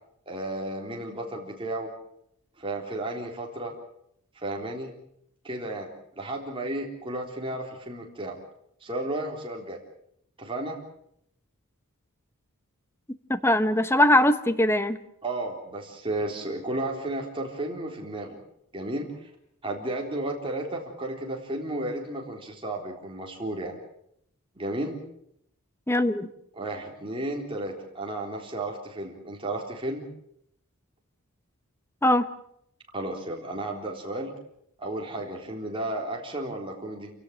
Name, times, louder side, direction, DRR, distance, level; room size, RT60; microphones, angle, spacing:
voice 1, 0.3-1.9 2.6-3.7 4.4-4.9 5.4-5.9 6.2-8.4 8.8-9.8 10.4-10.8 15.2-18.4 18.7-19.3 19.6-23.7 24.6-25.0 26.6-30.1 32.9-34.3 34.8-37.1, right 1 dB, 25° right, 0 dB, 3.8 m, -33 dB
voice 2, 13.3-15.0 25.9-26.3 32.0-32.3, left 1 dB, 10° left, 11 dB, 1.1 m, -21 dB
28.0 x 17.0 x 7.5 m, 0.72 s
head